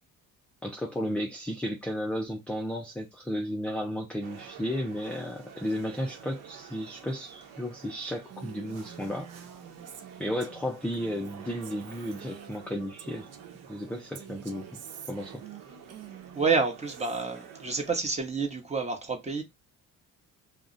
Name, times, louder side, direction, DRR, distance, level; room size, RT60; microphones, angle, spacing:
voice 1, 0.6-9.3 10.2-13.3 13.7-14.8 15.1-15.4, equal, 5° left, 0.4 m, -33 dB
sound 1, 4.2-18.0, right 7 dB, 80° right, 0.8 m, -49 dB
Female speech woman speaking, 8.3-13.7 14.1-17.3, right 9 dB, 50° right, 0.5 m, -48 dB
voice 2, 16.3-19.4, right 4 dB, 20° right, 0.9 m, -29 dB
2.3 x 2.1 x 3.8 m
cardioid pair, 90°, 33 cm